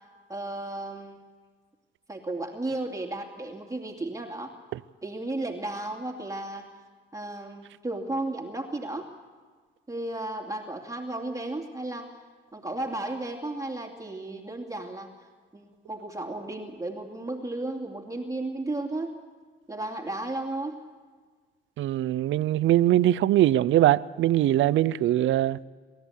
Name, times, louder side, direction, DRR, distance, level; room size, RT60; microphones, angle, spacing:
voice 1, 0.3-1.2 2.1-4.5 5.0-6.6 7.1-9.1 9.9-12.1 12.5-15.1 15.5-19.1 19.7-20.8, right 2 dB, 15° right, 2.6 m, -34 dB
voice 2, 21.8-25.6, right 13 dB, 75° right, 0.6 m, -22 dB
28.0 x 13.5 x 8.2 m
cardioid pair, 90°, 20 cm